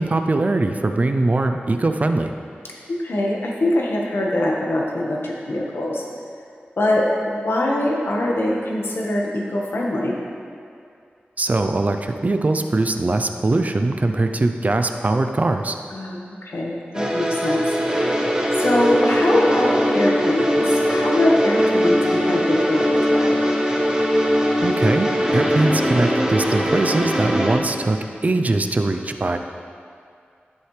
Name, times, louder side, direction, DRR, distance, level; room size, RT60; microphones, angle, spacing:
voice 1, 0.0-2.3 11.4-15.8 24.6-28.0 28.2-29.4, right 2 dB, 40° right, 6 dB, 0.5 m, -21 dB
voice 2, 2.9-6.0 6.8-10.2 15.9-17.6 18.5-23.5, left 1 dB, 80° left, -3 dB, 1.4 m, -23 dB
sound 1, 16.9-27.6, equal, 20° right, 1.1 m, -20 dB
11.0 x 8.1 x 3.3 m, 2.3 s
wide cardioid pair, 90°, 4 cm